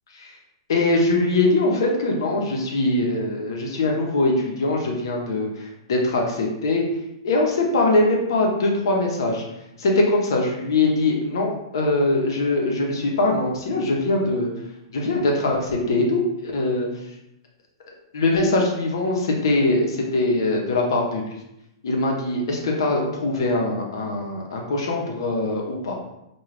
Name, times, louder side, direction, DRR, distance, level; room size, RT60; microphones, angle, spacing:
voice 1, 0.7-6.8 7.2-9.4 9.8-14.5 14.9-16.9 18.1-21.2 21.8-25.9, left 2 dB, 70° left, 0 dB, 0.7 m, -22 dB
2.3 x 2.3 x 3.2 m, 0.87 s
hypercardioid pair, 110°, 2 cm